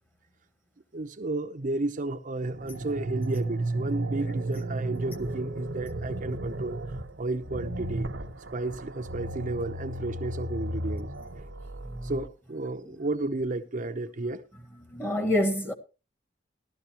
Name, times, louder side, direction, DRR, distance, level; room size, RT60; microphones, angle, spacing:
voice 1, 0.9-6.8 7.2-8.1 8.5-11.1 12.0-14.4, right 2 dB, 45° right, 0.7 m, -32 dB
sound 1, 2.4-12.3, right 2 dB, 80° right, 1.2 m, -34 dB
voice 2, 14.9-15.7, left 1 dB, 10° left, 1.4 m, -26 dB
16.5 x 12.0 x 3.0 m
head